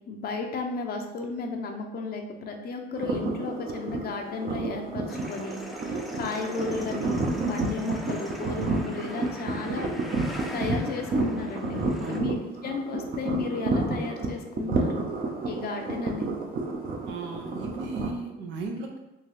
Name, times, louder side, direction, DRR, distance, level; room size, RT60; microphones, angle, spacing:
voice 1, 0.1-5.6 6.1-9.9 10.5-15.0 15.4-16.3, left 4 dB, 60° left, 3 dB, 0.5 m, -34 dB
sound 1, 2.9-18.1, right 3 dB, 50° right, 0.7 m, -30 dB
sound 2, 5.1-12.2, equal, ahead, 0.5 m, -41 dB
voice 2, 12.0-12.3 17.1-19.0, right 3 dB, 85° right, 3 dB, 0.6 m, -36 dB
3.8 x 2.7 x 3.1 m, 0.97 s
cardioid pair, 80°, 18 cm